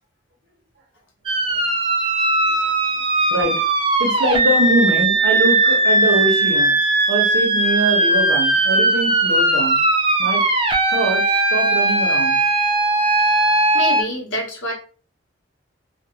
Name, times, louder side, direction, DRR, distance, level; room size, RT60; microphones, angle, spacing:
sound 1, 1.3-14.0, right 2 dB, 30° right, 0.3 m, -18 dB
voice 1, 3.3-3.7 4.0-6.7 7.1-9.8 10.2-10.4 10.9-12.4, right 1 dB, 70° right, 1 dB, 0.9 m, -23 dB
voice 2, 13.7-14.7, equal, 80° left, 0 dB, 0.9 m, -27 dB
2.5 x 2.2 x 2.8 m, 0.39 s
head